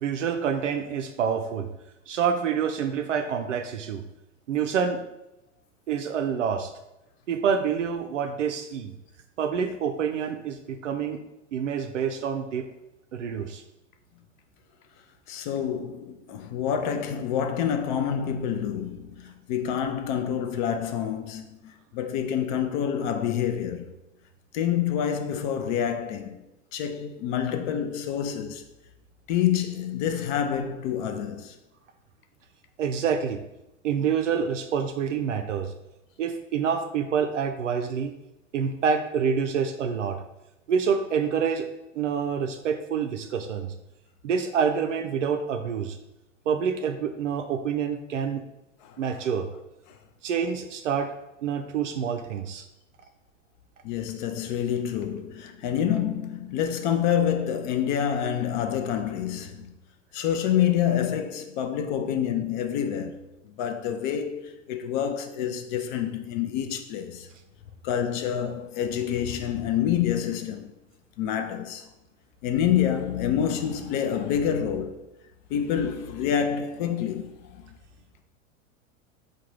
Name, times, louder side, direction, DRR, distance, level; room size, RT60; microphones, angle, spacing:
voice 1, 0.0-1.7 2.1-4.0 4.5-5.0 5.9-6.7 7.3-8.9 9.4-11.2 11.5-12.6 13.1-13.6 32.8-33.4 33.8-35.7 36.2-38.1 38.5-40.2 40.7-41.7 41.9-43.7 44.2-46.0 46.5-48.4 49.0-49.5 50.2-51.1 51.4-52.6, right 7 dB, 70° right, 0.5 m, -27 dB
voice 2, 15.3-23.9 24.5-26.4 26.7-28.6 29.3-31.6 48.8-49.0 53.8-59.7 60.1-63.3 63.6-67.3 67.8-70.7 71.2-71.9 72.4-75.0 75.5-77.6, left 9 dB, 40° left, 0.5 m, -27 dB
4.7 x 2.3 x 4.5 m
figure-of-eight pair, 85°, 38 cm